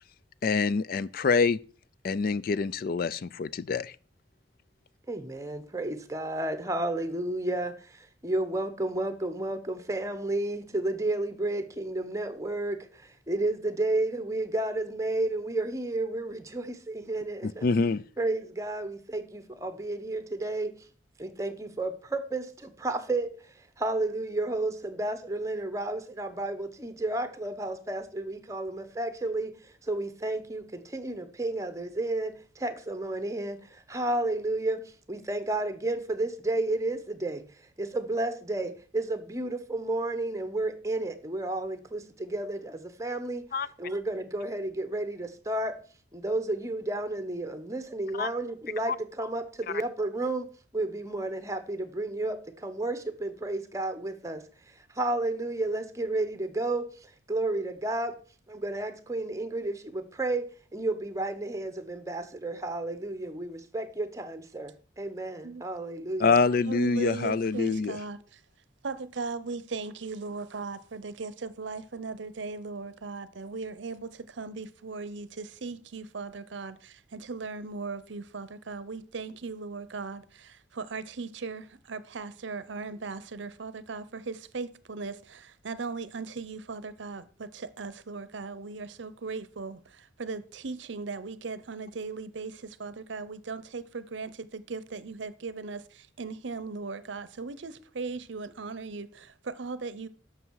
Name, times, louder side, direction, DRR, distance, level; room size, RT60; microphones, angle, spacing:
voice 1, 0.4-1.6 2.0-4.0 17.4-18.0 43.5-43.7 48.1-48.3 48.9-49.0 49.7-49.8 66.2-68.0, left 4 dB, 50° left, 0.4 m, -26 dB
voice 2, 5.1-17.7 18.2-20.7 21.2-37.4 37.8-43.5 43.8-45.8 46.1-58.2 58.5-60.5 60.7-66.3, right 2 dB, 15° right, 0.9 m, -32 dB
voice 3, 66.7-68.2 68.8-100.1, right 4 dB, 65° right, 0.7 m, -38 dB
11.0 x 6.8 x 4.7 m
head